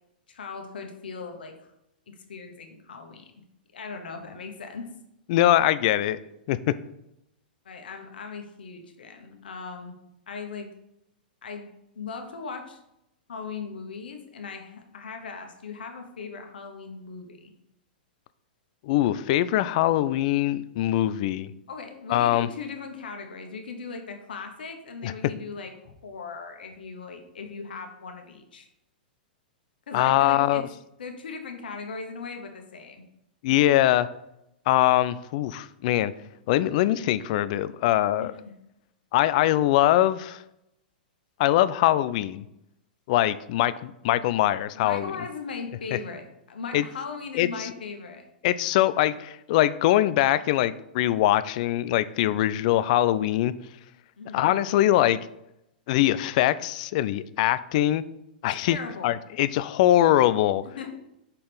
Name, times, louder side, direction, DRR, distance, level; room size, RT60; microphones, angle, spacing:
voice 1, 0.3-1.5 2.1-3.3 3.7-4.9 7.6-9.9 10.3-10.7 11.4-11.6 11.9-12.8 13.3-17.5 21.7-28.7 29.9-30.7 31.0-33.0 38.2-38.3 44.7-48.2 54.2-54.5 58.6-59.1 60.6-61.0, left 5 dB, 75° left, 4 dB, 1.2 m, -38 dB
voice 2, 5.3-6.2 6.5-6.7 18.8-21.5 22.1-22.5 25.0-25.1 29.9-30.6 33.4-34.1 34.7-36.1 36.5-38.3 39.1-40.4 41.4-42.4 43.1-45.1 46.7-46.8 47.4-47.7 48.4-53.5 54.3-55.2 55.9-58.0 58.4-58.8 59.0-60.6, left 13 dB, 50° left, 15 dB, 0.4 m, -22 dB
5.6 x 4.3 x 5.1 m, 0.84 s
hypercardioid pair, 110°, 5 cm